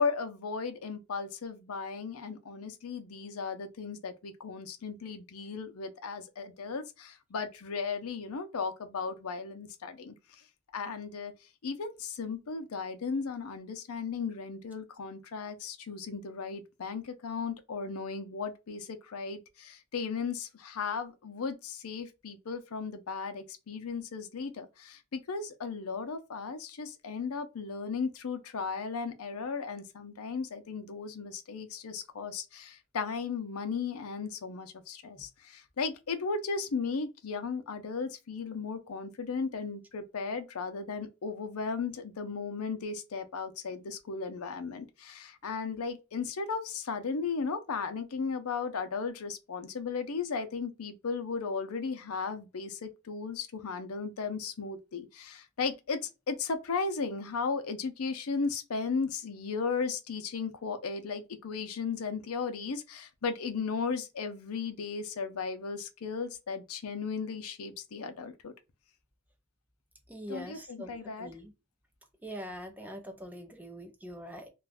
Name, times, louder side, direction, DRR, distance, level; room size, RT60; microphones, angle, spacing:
voice 1, 0.0-10.1 10.7-11.3 11.6-56.0 56.3-68.5 70.3-71.3, left 5 dB, 80° left, 0.6 m, -36 dB
voice 2, 70.1-71.5 72.2-74.5, equal, 10° right, 0.5 m, -43 dB
2.5 x 2.3 x 3.3 m
head